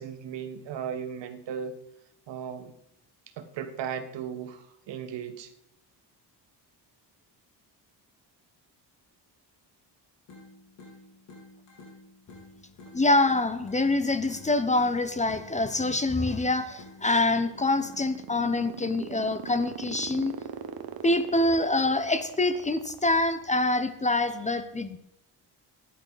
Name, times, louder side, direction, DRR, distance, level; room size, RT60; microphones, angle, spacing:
voice 1, 0.0-1.7 2.3-2.7 3.4-5.5, right 7 dB, 80° right, 8 dB, 1.4 m, -36 dB
sound 1, 10.3-18.3, left 2 dB, 85° left, 3.8 m, -51 dB
voice 2, 12.9-20.3 21.0-25.0, left 2 dB, 15° left, 11 dB, 0.8 m, -25 dB
sound 2, 17.0-23.6, right 9 dB, 55° right, 1.1 m, -39 dB
14.5 x 10.5 x 4.0 m, 0.78 s
cardioid pair, 120°, 43 cm